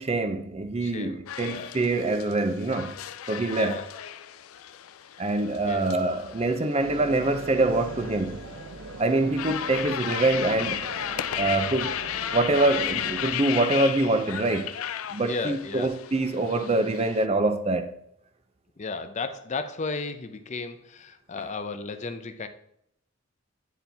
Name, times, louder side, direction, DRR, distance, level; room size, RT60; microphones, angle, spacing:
voice 1, 0.0-2.9 3.3-3.8 5.2-8.4 9.0-10.8 11.4-11.9 12.3-14.7 15.1-17.9, right 2 dB, 30° right, 0.6 m, -25 dB
voice 2, 0.8-1.7 3.6-3.9 5.7-5.9 15.2-15.9 18.8-22.5, left 4 dB, 35° left, 0.6 m, -34 dB
sound 1, 1.3-17.2, left 10 dB, 80° left, 0.4 m, -35 dB
sound 2, 6.8-13.4, right 3 dB, 75° right, 0.7 m, -40 dB
9.2 x 4.3 x 3.5 m
head